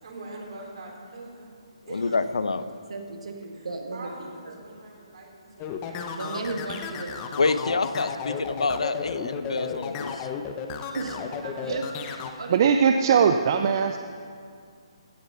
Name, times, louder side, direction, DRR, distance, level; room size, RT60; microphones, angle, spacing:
voice 1, 0.0-1.5 1.9-2.3 3.6-6.1 10.1-10.2 10.9-11.7, right 2 dB, 60° right, -1 dB, 3.9 m, -43 dB
voice 2, 1.9-2.6 7.4-10.1, left 4 dB, 85° left, 12 dB, 0.8 m, -26 dB
voice 3, 2.6-4.6 6.1-7.4 10.9-11.2 11.6-11.8 12.4-12.9, right 3 dB, 80° right, 3 dB, 1.9 m, -35 dB
sound 1, 5.6-12.3, left 6 dB, 20° left, 0.9 m, -34 dB
voice 4, 12.5-14.0, right 7 dB, 40° right, 7 dB, 0.6 m, -20 dB
16.0 x 9.2 x 5.7 m, 2.2 s
hypercardioid pair, 155°, 3 cm